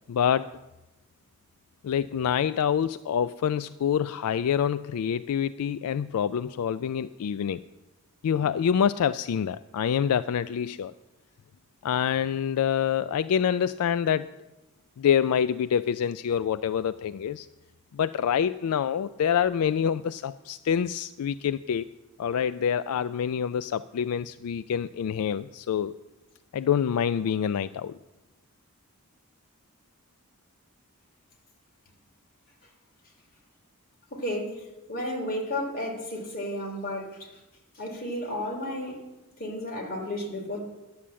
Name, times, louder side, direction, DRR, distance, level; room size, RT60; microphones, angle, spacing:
voice 1, 0.1-0.6 1.8-7.6 8.2-10.9 11.8-14.3 15.0-17.5 17.9-21.9 22.2-25.9 26.5-27.9, left 8 dB, 80° left, 13 dB, 0.3 m, -26 dB
voice 2, 34.1-37.4 37.7-39.0 39.4-40.6, left 1 dB, 40° left, 0 dB, 3.0 m, -33 dB
11.0 x 8.5 x 7.5 m, 1.0 s
head